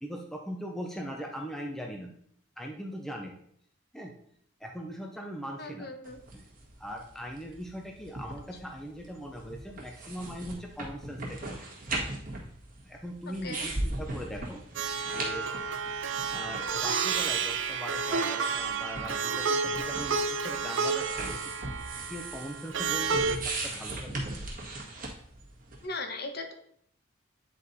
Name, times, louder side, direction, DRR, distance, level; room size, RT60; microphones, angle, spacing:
voice 1, 0.0-2.1 2.6-3.3 3.9-4.1 4.6-5.9 6.3-6.5 6.8-11.7 12.8-14.6 15.0-15.5 16.3-21.4 22.1-24.2, equal, ahead, 1 dB, 0.6 m, -40 dB
voice 2, 5.6-6.2 13.4-13.6 25.8-26.5, left 2 dB, 50° left, 5 dB, 1.0 m, -38 dB
sound 1, 6.0-25.9, right 2 dB, 40° right, 1.6 m, -40 dB
Plucked string instrument, 14.7-23.4, right 5 dB, 65° right, 0.6 m, -30 dB
9.7 x 4.1 x 4.1 m, 0.67 s
head